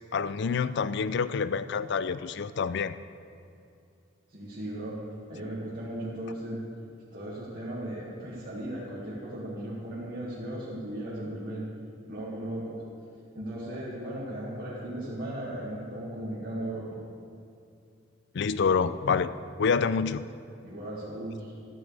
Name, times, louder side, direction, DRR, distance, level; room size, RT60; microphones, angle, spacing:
voice 1, 0.1-2.9 18.3-19.3 19.6-20.3, left 5 dB, 60° left, 14 dB, 0.4 m, -27 dB
voice 2, 4.3-5.0 5.3-6.6 7.1-11.6 12.1-12.8 13.3-17.0 20.6-21.5, right 1 dB, 50° right, -9 dB, 2.1 m, -36 dB
13.5 x 13.5 x 3.5 m, 2.6 s
head